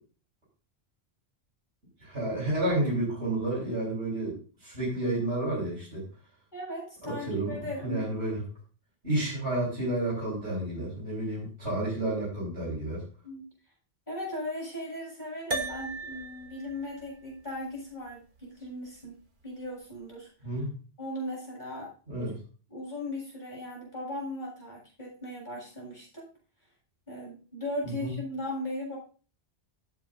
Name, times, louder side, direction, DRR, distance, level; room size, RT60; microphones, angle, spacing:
voice 1, 2.0-6.0 7.0-7.5 7.8-8.4 9.0-13.0 20.4-20.7 22.1-22.4 28.0-28.1, right 1 dB, 80° right, -8 dB, 6.1 m, -30 dB
voice 2, 6.5-8.1 9.1-9.3 13.2-13.5 14.1-19.2 19.4-20.3 21.0-21.9 22.7-26.3 27.1-29.0, left 1 dB, 45° left, -3 dB, 7.8 m, -38 dB
sound 1, 15.5-20.1, right 3 dB, 50° right, 1.6 m, -40 dB
16.5 x 9.1 x 2.7 m, 0.38 s
omnidirectional pair, 1.1 m